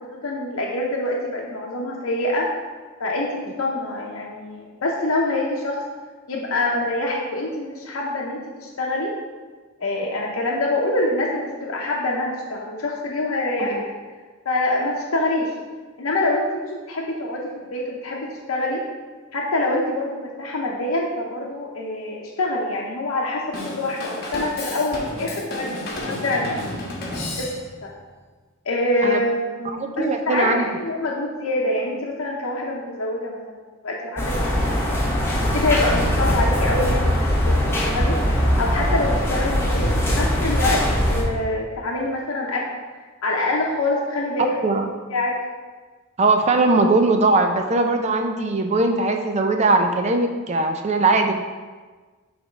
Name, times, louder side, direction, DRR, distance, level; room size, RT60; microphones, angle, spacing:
voice 1, 0.0-2.5 3.0-5.8 6.3-9.1 9.8-13.8 14.4-15.5 16.0-18.8 19.3-26.8 27.4-27.5 28.7-33.4 33.8-34.9 35.5-37.1 37.4-38.2 38.6-42.7 43.2-44.8 45.1-45.4, left 2 dB, 85° left, -2 dB, 0.7 m, -25 dB
Drum kit / Drum, 23.5-27.9, left 1 dB, 50° left, 1.1 m, -31 dB
voice 2, 29.7-30.7 44.6-44.9 46.2-51.3, right 3 dB, 30° right, 4 dB, 0.4 m, -20 dB
sound 1, 34.2-41.2, equal, 10° left, 0.9 m, -21 dB
5.9 x 3.5 x 5.2 m, 1.4 s
head